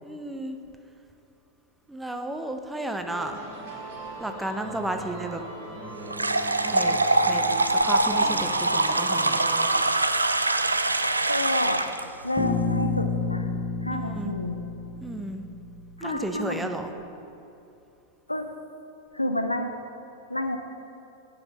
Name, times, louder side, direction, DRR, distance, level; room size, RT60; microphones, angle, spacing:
voice 1, 0.0-0.6 1.9-3.4 4.2-5.4 6.6-7.0 7.3-9.5 14.2-14.3 15.0-15.4 16.0-16.9, right 1 dB, 5° right, 5 dB, 0.6 m, -33 dB
sound 1, 3.1-9.7, right 2 dB, 50° right, 2.0 m, -39 dB
sound 2, 6.1-12.0, right 2 dB, 80° right, 0.3 m, -23 dB
voice 2, 11.3-12.0 12.2-13.5 13.8-14.6 16.0-16.7 18.3-18.5 19.1-19.7 20.3-20.6, left 1 dB, 85° left, 7 dB, 0.5 m, -29 dB
Bass guitar, 12.4-16.4, left 4 dB, 25° left, 1.0 m, -30 dB
9.5 x 4.9 x 5.3 m, 2.7 s
figure-of-eight pair, 90°, 0 cm